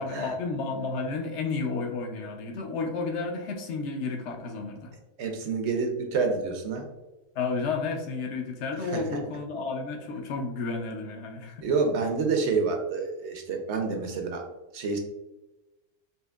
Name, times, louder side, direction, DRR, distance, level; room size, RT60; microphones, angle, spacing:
voice 1, 0.0-4.9 7.4-11.7, left 4 dB, 65° left, 4 dB, 0.9 m, -32 dB
voice 2, 5.2-6.9 8.9-9.0 11.6-14.5 14.7-15.0, right 4 dB, 65° right, 3 dB, 0.9 m, -28 dB
4.3 x 2.8 x 2.3 m, 1.0 s
omnidirectional pair, 1.3 m